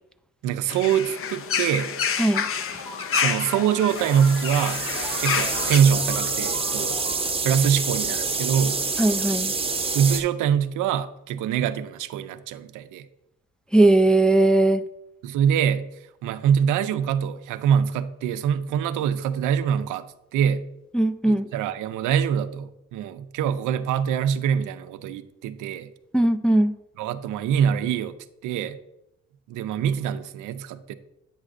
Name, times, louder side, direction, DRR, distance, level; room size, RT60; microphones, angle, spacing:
voice 1, 0.4-1.9 3.2-4.8 5.2-6.9 7.4-8.8 9.9-13.0 15.2-15.9 16.2-20.0 20.3-20.6 21.3-25.9 27.0-28.2 28.4-28.8 29.5-30.9, right 8 dB, 85° right, 12 dB, 0.5 m, -24 dB
sound 1, 0.7-5.8, left 7 dB, 45° left, 0.6 m, -28 dB
sound 2, 2.3-8.6, left 1 dB, 80° left, 1.7 m, -39 dB
sound 3, 3.9-10.2, right 4 dB, 20° right, 0.8 m, -27 dB
voice 2, 9.0-9.5 13.7-14.8 20.9-21.5 26.1-26.7, right 2 dB, 5° left, 8 dB, 0.3 m, -19 dB
8.6 x 6.3 x 2.5 m, 0.84 s
cardioid pair, 90°, 30 cm